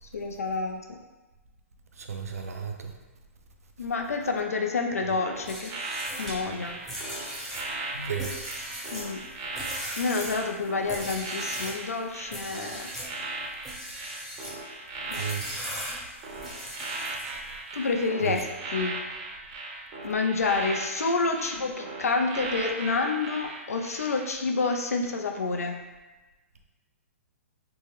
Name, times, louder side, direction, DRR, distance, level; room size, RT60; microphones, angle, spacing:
voice 1, 0.0-1.0 3.8-5.7 6.2-6.8 8.9-9.2 10.0-12.9 15.1-15.2 17.7-19.0 20.0-25.8, left 4 dB, 85° left, 3 dB, 0.4 m, -28 dB
voice 2, 2.0-2.9 7.9-8.4 15.2-15.4 18.2-18.4, right 6 dB, 85° right, 4 dB, 0.4 m, -33 dB
sound 1, 5.1-24.3 24.6-24.9, right 3 dB, 40° right, 0.6 m, -38 dB
sound 2, 5.4-11.8 12.3-13.1 13.6-14.6 15.1-17.5, equal, 5° left, 0.7 m, -38 dB
3.2 x 2.1 x 3.0 m, 1.1 s
hypercardioid pair, 125°, 8 cm